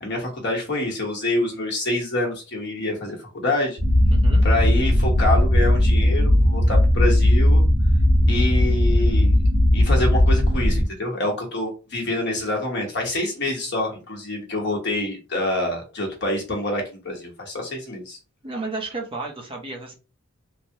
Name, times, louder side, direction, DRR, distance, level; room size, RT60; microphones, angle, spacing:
voice 1, 0.0-3.8 4.4-7.6 8.3-9.4 9.7-18.2, left 2 dB, 55° left, 0 dB, 1.0 m, -26 dB
sound 1, 3.8-10.8, left 1 dB, 45° right, 1.7 m, -17 dB
voice 2, 4.1-4.4 12.1-12.2 18.4-20.0, right 2 dB, 25° right, 1 dB, 0.6 m, -32 dB
3.2 x 2.1 x 2.7 m, 0.31 s
head